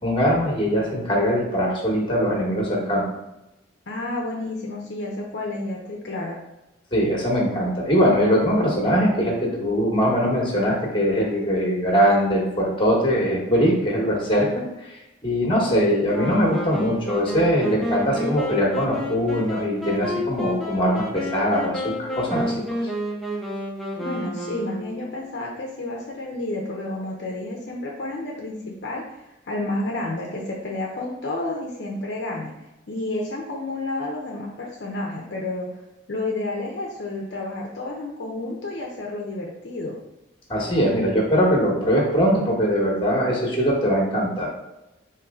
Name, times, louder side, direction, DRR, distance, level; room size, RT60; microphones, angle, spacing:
voice 1, 0.0-3.1 6.9-22.9 40.5-44.5, equal, 25° left, -2 dB, 1.1 m, -21 dB
voice 2, 3.9-6.4 24.0-32.5 32.9-35.7 36.1-40.0, left 2 dB, 55° left, -2 dB, 0.6 m, -30 dB
Wind instrument woodwind instrument, 16.1-25.1, left 1 dB, ahead, 0.6 m, -30 dB
4.6 x 3.0 x 3.6 m, 0.95 s
head